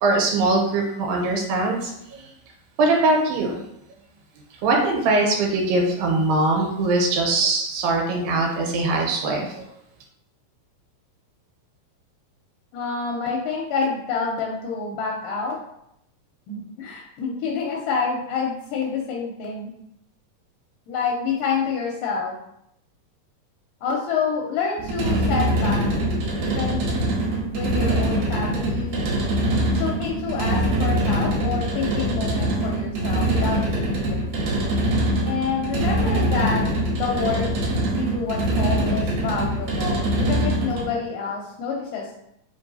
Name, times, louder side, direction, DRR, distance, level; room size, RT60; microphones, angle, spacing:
voice 1, 0.0-2.3 2.8-3.6 4.6-9.7, right 2 dB, 85° right, 1 dB, 2.5 m, -22 dB
voice 2, 12.7-15.6 16.5-19.7 20.9-22.3 23.8-27.0 27.5-29.1 29.6-34.5 35.3-36.6 36.9-37.5 38.0-42.1, left 5 dB, 80° left, -1 dB, 2.1 m, -28 dB
sound 1, 24.8-41.0, right 1 dB, 70° right, 2.4 m, -23 dB
5.3 x 2.9 x 2.6 m, 0.77 s
omnidirectional pair, 4.1 m